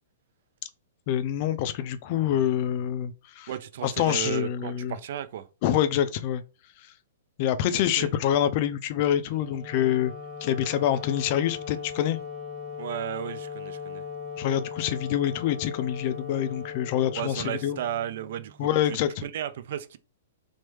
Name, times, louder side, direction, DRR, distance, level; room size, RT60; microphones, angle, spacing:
voice 1, 1.1-3.5 3.8-5.0 5.6-6.4 7.4-10.1 10.4-12.2 14.4-17.8 18.6-19.2, left 10 dB, 45° left, 0.4 m, -26 dB
voice 2, 3.5-5.4 8.0-8.1 12.8-14.0 17.1-20.0, right 11 dB, 60° right, 0.3 m, -34 dB
Wind instrument woodwind instrument, 9.3-18.6, left 6 dB, 25° right, 1.2 m, -39 dB
3.3 x 2.1 x 3.1 m
hypercardioid pair, 130°, 0 cm